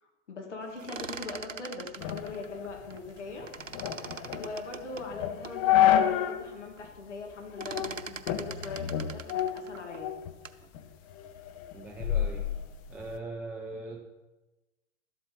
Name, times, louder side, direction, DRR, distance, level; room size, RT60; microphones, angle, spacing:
voice 1, 0.0-3.5 4.3-10.1, left 3 dB, 65° left, 2 dB, 2.3 m, -41 dB
sound 1, 0.7-3.2 3.5-5.6 6.1-6.2 6.5-6.9 7.1-10.7, right 5 dB, 85° right, 0.8 m, -42 dB
sound 2, 2.0-6.5 6.8-6.9 7.6-7.9 8.3-10.3 10.7-13.2, left 11 dB, 30° left, 0.7 m, -29 dB
voice 2, 11.7-12.5 12.9-14.1, right 2 dB, 5° right, -2 dB, 0.5 m, -40 dB
12.5 x 8.0 x 5.1 m, 1.1 s
figure-of-eight pair, 110°, 38 cm